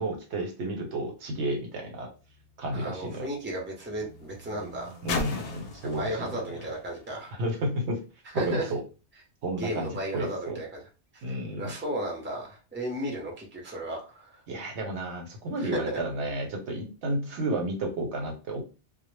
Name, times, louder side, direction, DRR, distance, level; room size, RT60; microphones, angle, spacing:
voice 1, 0.0-2.1 2.6-3.3 5.0-6.6 7.3-8.0 8.3-8.8 9.4-10.6 11.2-11.7 14.5-18.6, right 1 dB, 80° right, 2 dB, 1.0 m, -32 dB
sound 1, 1.7-8.1 8.9-9.0, left 3 dB, 65° left, 0.7 m, -41 dB
voice 2, 2.7-5.0 6.0-7.4 8.4-8.6 9.6-10.8 11.1-11.2 11.5-14.3 15.6-15.7, right 1 dB, 15° right, -1 dB, 0.5 m, -34 dB
2.0 x 2.0 x 3.1 m, 0.33 s
omnidirectional pair, 1.1 m